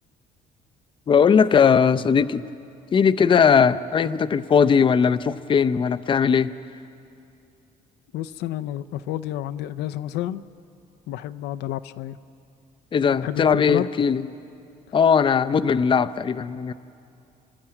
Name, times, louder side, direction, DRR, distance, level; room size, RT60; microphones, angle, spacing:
voice 1, 1.1-2.4 2.9-6.5 12.9-14.3 14.9-16.7, left 6 dB, 30° left, 11 dB, 0.5 m, -19 dB
voice 2, 8.1-10.4 11.1-12.2 13.2-13.9, left 13 dB, 85° left, 12 dB, 0.6 m, -30 dB
29.0 x 12.5 x 8.8 m, 2.6 s
cardioid pair, 110°, 17 cm